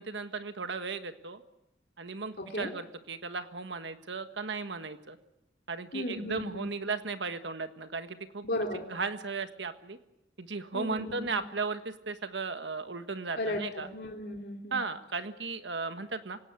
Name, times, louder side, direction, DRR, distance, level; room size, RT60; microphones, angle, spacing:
voice 1, 0.0-1.4 2.0-5.2 5.7-8.5 8.9-10.0 10.4-13.9 14.7-16.4, right 4 dB, 80° right, 9 dB, 1.5 m, -36 dB
voice 2, 2.4-2.7 5.9-6.7 8.4-8.8 10.7-11.3 13.4-14.8, left 1 dB, 60° left, 1 dB, 3.1 m, -35 dB
26.0 x 17.5 x 8.3 m, 0.88 s
head